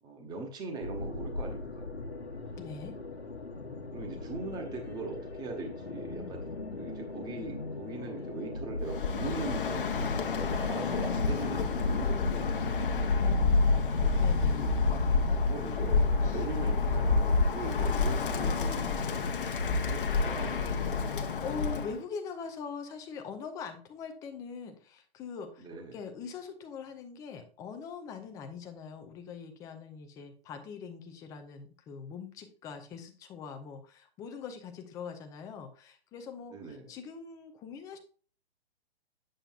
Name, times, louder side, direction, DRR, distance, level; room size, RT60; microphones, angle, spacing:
voice 1, 0.0-1.9 3.9-6.4 6.8-13.5 14.4-14.7 15.4-19.2 19.6-20.7 25.6-26.0 36.5-36.9, right 3 dB, 15° right, 4 dB, 1.0 m, -41 dB
sound 1, 0.8-12.7, left 2 dB, 90° left, 1.1 m, -40 dB
voice 2, 2.5-3.0 13.1-13.7 14.2-15.1 21.4-38.0, left 6 dB, 10° left, 6 dB, 0.6 m, -42 dB
Bird, 8.9-22.0, left 4 dB, 55° left, 1.0 m, -28 dB
8.7 x 7.7 x 2.4 m, 0.42 s
figure-of-eight pair, 125°, 31 cm